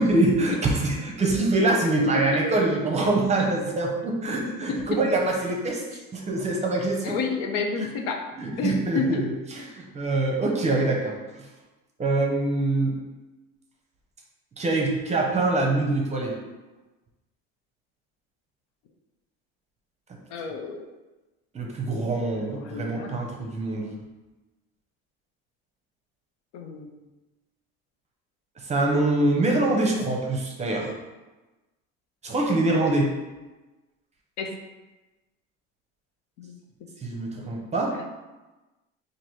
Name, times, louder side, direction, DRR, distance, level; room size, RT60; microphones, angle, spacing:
voice 1, 0.0-5.8 6.1-7.1 7.8-7.9 8.4-11.1 12.0-12.9 14.6-16.3 21.5-23.9 28.6-30.9 32.2-33.1 37.0-37.9, right 2 dB, 25° right, -1 dB, 0.7 m, -24 dB
voice 2, 4.5-5.0 7.0-8.2 8.6-9.2 20.3-20.9 22.3-23.1 26.5-26.9 34.4-34.5 36.4-36.5, left 4 dB, 75° left, 3 dB, 0.6 m, -30 dB
4.0 x 2.6 x 3.1 m, 1.1 s
cardioid pair, 120°, 29 cm